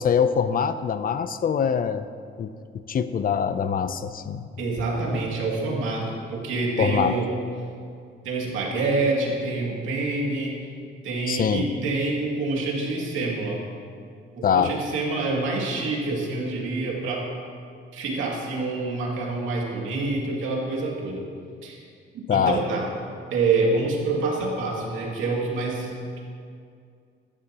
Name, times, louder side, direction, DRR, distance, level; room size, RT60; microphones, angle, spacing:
voice 1, 0.0-2.1 2.4-2.5 2.9-4.5 6.8-7.2 11.3-11.7 14.4-14.8 22.3-22.6, left 7 dB, 45° left, 12 dB, 0.6 m, -23 dB
voice 2, 4.6-7.3 8.2-10.6 11.0-13.6 14.3-17.3 17.9-21.2 21.6-21.8 22.3-22.9 23.3-25.9, right 3 dB, 85° right, -2 dB, 2.4 m, -26 dB
14.5 x 12.0 x 2.9 m, 2.3 s
cardioid pair, 90°, 20 cm